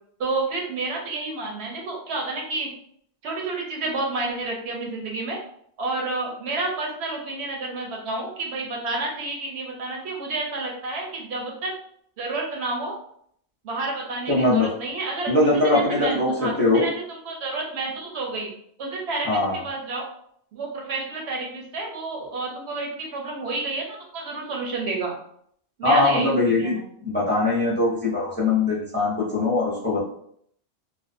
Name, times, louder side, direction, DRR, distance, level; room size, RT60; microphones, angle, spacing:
voice 1, 0.2-2.7 3.2-5.4 5.8-11.7 12.2-13.0 13.6-15.3 15.6-18.5 18.8-20.1 20.5-23.8 24.1-25.1 25.8-26.8, right 3 dB, 80° right, 0 dB, 1.0 m, -30 dB
voice 2, 14.3-14.7 15.3-16.9 19.2-19.6 25.8-26.8 27.0-30.0, left 2 dB, 15° left, -5 dB, 0.6 m, -21 dB
2.5 x 2.2 x 2.5 m, 0.66 s
omnidirectional pair, 1.1 m